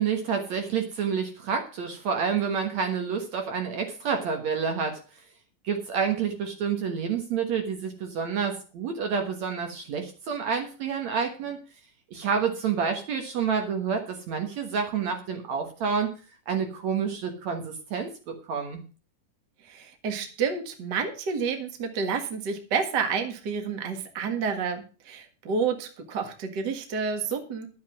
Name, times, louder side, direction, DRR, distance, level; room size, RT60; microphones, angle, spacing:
voice 1, 0.0-5.0 5.6-11.6 12.1-16.1 16.5-18.8, right 6 dB, 60° right, 5 dB, 2.2 m, -28 dB
voice 2, 19.6-27.7, right 5 dB, 40° right, 5 dB, 1.6 m, -29 dB
11.5 x 7.7 x 6.2 m, 0.36 s
omnidirectional pair, 4.2 m